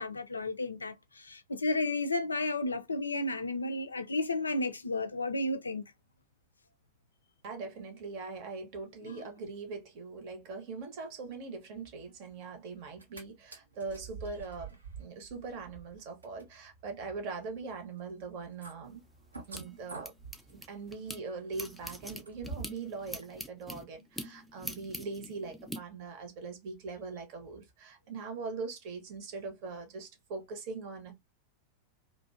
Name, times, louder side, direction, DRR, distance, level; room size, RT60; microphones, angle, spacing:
voice 1, 0.0-5.8 9.1-9.3, left 2 dB, 75° left, 0.3 m, -33 dB
voice 2, 7.4-19.0 19.5-20.1 20.5-31.1, right 4 dB, 45° right, 0.8 m, -41 dB
sound 1, 12.9-13.2 13.5-22.9 23.2-23.3, right 4 dB, 75° right, 0.6 m, -48 dB
sound 2, 18.9-21.2 21.5-25.8, equal, ahead, 0.4 m, -44 dB
2.5 x 2.1 x 2.3 m
figure-of-eight pair, 90°, 0 cm